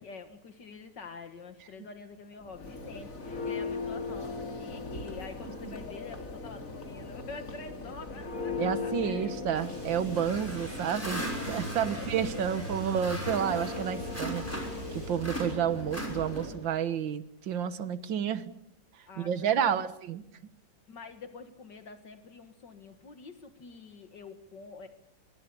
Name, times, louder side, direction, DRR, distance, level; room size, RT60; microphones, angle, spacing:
voice 1, 0.0-9.7 10.4-10.5 11.8-12.7 19.1-19.9 20.9-24.9, left 4 dB, 70° left, 8 dB, 2.1 m, -47 dB
Church bell, 2.4-16.7, left 3 dB, 45° left, 3.3 m, -38 dB
voice 2, 8.6-14.5 14.9-18.4 19.0-20.2, right 8 dB, 85° right, 13 dB, 1.9 m, -30 dB
Sink (filling or washing), 9.5-16.1 16.4-16.5, right 1 dB, 65° right, 7.8 m, -53 dB
sound 1, 10.1-14.9 15.2-16.7, equal, 5° left, 5.5 m, -39 dB
25.0 x 22.5 x 6.9 m, 0.74 s
omnidirectional pair, 2.0 m